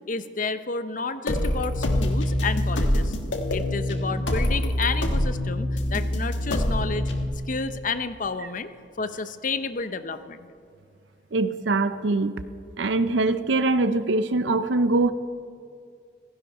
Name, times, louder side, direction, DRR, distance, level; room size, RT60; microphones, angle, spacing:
voice 1, 0.1-3.1 3.5-7.1 7.5-8.7 9.0-10.5, left 4 dB, 45° left, 11 dB, 0.7 m, -31 dB
sound 1, 1.3-7.3, left 1 dB, 85° left, 1.5 m, -25 dB
voice 2, 11.3-12.3 12.8-15.1, right 2 dB, 75° right, 12 dB, 0.6 m, -23 dB
16.5 x 15.0 x 5.5 m, 2.2 s
head